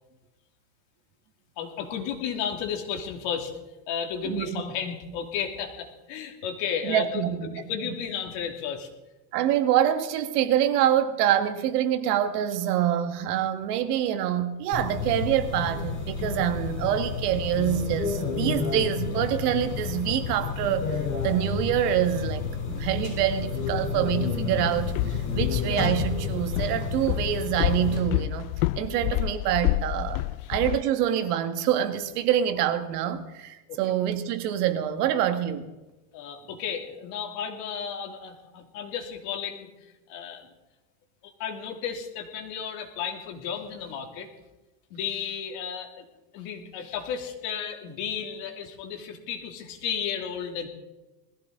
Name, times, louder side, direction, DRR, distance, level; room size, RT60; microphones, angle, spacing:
voice 1, 1.6-3.5 3.9-7.2 7.5-8.9 30.4-30.5 33.7-33.8 36.1-39.7 40.1-40.5 41.4-44.3 44.9-46.0 46.3-50.7, left 7 dB, 60° left, 2.9 m, -33 dB
voice 2, 4.2-4.6 6.8-7.6 9.3-20.9 21.2-28.5 28.8-30.2 30.5-35.7, right 10 dB, 85° right, 1.7 m, -26 dB
sound 1, 14.7-28.0, left 5 dB, 40° left, 7.2 m, -30 dB
Walk footsteps, 24.7-30.8, left 18 dB, 75° left, 0.5 m, -29 dB
20.5 x 15.0 x 3.8 m
supercardioid pair, 155°, 45 cm